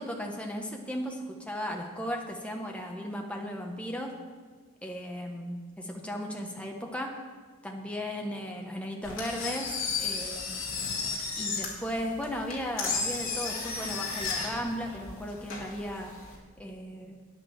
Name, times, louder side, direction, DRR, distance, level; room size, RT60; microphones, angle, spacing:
voice 1, 0.0-4.1 4.8-7.1 7.6-10.6 11.4-16.1 16.6-17.2, equal, 5° left, 1 dB, 1.1 m, -36 dB
Engine, 9.0-16.4, left 4 dB, 60° left, 2.5 m, -34 dB
9.4 x 8.3 x 7.1 m, 1.5 s
head